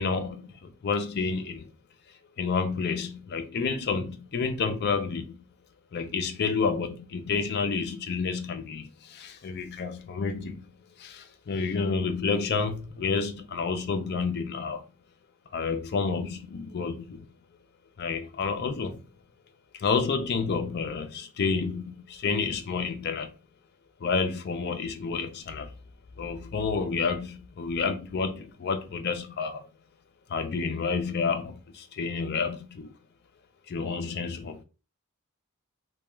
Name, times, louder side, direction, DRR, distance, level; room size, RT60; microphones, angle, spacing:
voice 1, 0.0-1.7 2.4-5.4 5.9-10.7 11.0-14.8 15.5-17.3 18.0-19.0 19.7-23.3 24.0-25.7 26.2-29.6 30.3-32.9 33.7-34.6, left 5 dB, 50° left, 0.4 m, -30 dB
2.3 x 2.2 x 3.0 m
head